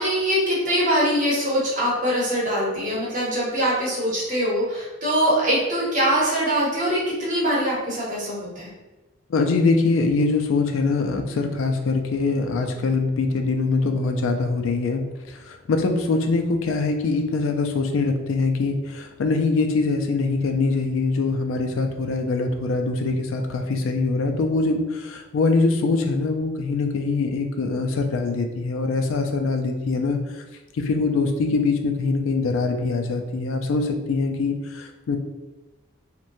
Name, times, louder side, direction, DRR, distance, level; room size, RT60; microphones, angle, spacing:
voice 1, 0.0-8.7, equal, 40° right, -6 dB, 0.8 m, -23 dB
voice 2, 9.3-30.4 30.7-35.2, left 3 dB, 80° left, 5 dB, 0.3 m, -23 dB
2.9 x 2.1 x 2.5 m, 1.1 s
head